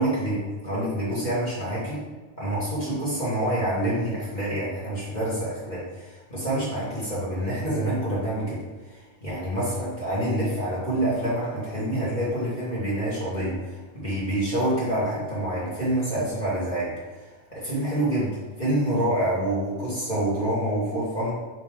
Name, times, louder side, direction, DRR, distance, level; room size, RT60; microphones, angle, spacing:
voice 1, 0.0-2.0 2.4-21.3, right 1 dB, 30° left, -8 dB, 0.8 m, -27 dB
8.6 x 3.1 x 3.6 m, 1.3 s
omnidirectional pair, 3.8 m